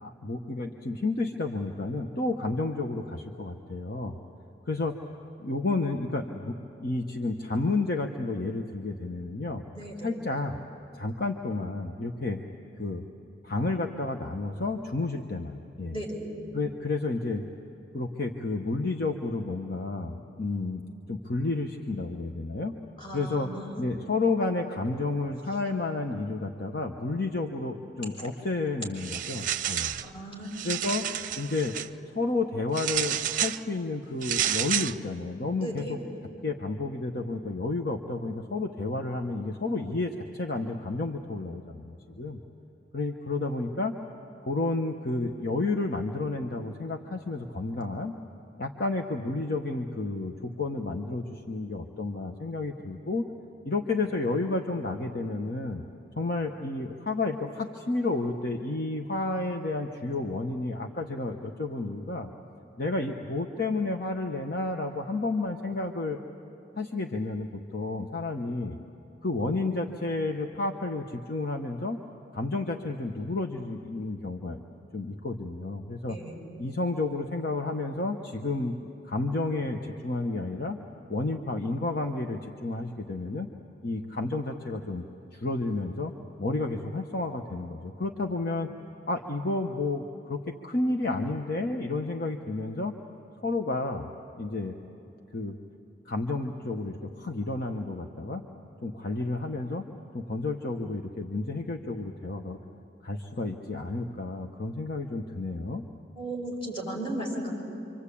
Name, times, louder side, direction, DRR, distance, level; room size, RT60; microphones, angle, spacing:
voice 1, 0.0-4.2 4.7-5.0 5.4-9.6 10.0-10.6 10.9-12.4 12.8-13.0 13.4-16.0 16.5-17.4 17.9-20.8 21.1-22.7 23.1-23.5 23.8-29.9 30.6-31.1 31.4-31.7 32.1-36.0 36.4-42.4 42.9-43.9 44.4-48.1 48.6-53.3 53.6-55.8 56.2-62.3 62.8-66.2 66.8-68.8 69.2-72.0 72.3-74.6 74.9-76.2 76.6-78.7 79.0-80.8 81.1-83.5 83.8-85.0 85.3-86.1 86.4-88.7 89.1-92.9 93.4-94.1 94.4-94.8 95.3-95.6 96.1-98.4 98.8-99.9 100.1-102.6 103.0-105.8, left 3 dB, 55° left, 3 dB, 1.1 m, -31 dB
voice 2, 9.7-10.2 15.9-16.3 23.0-23.8 30.0-30.8 35.6-36.0 76.1-76.4 106.2-107.6, right 1 dB, 30° left, -1 dB, 6.3 m, -36 dB
sound 1, 29.0-30.1 30.5-31.9 32.7-33.6 34.2-35.0, right 10 dB, 50° right, 0.6 m, -30 dB
27.5 x 25.5 x 8.6 m, 3.0 s
head